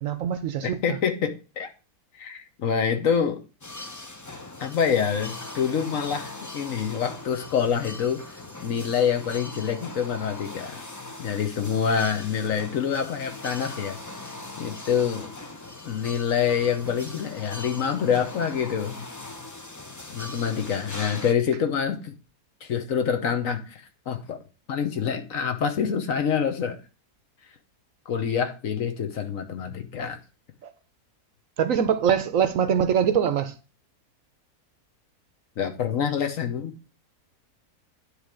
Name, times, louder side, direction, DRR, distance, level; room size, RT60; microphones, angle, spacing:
voice 1, 0.0-0.8 30.6-30.7 31.6-33.5, right 8 dB, 65° right, 1.0 m, -23 dB
voice 2, 0.6-1.7 2.1-3.4 4.6-10.8 11.2-15.3 15.8-19.0 20.1-22.1 22.6-24.4 24.7-26.8 28.1-30.2 35.6-36.7, left 7 dB, 60° left, 1.2 m, -26 dB
sound 1, 3.6-21.3, left 2 dB, 30° left, 0.3 m, -40 dB
9.8 x 3.3 x 6.3 m
omnidirectional pair, 1.6 m